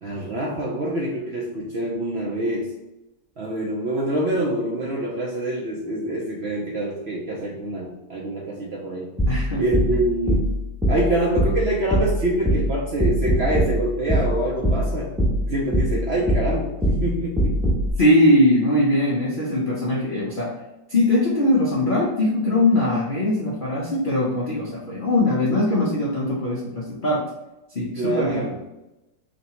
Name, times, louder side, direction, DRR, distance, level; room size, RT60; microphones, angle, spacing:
voice 1, 0.0-2.7 3.4-9.1 9.6-10.5 10.9-15.1 15.4-17.6 28.0-28.6, right 1 dB, 75° right, -4 dB, 0.5 m, -25 dB
sound 1, 9.2-17.9, equal, ahead, 0.7 m, -23 dB
voice 2, 9.3-9.6 18.0-20.5 20.9-27.2 27.7-28.5, left 1 dB, 65° left, -5 dB, 0.5 m, -21 dB
3.1 x 2.8 x 4.3 m, 0.95 s
omnidirectional pair, 1.9 m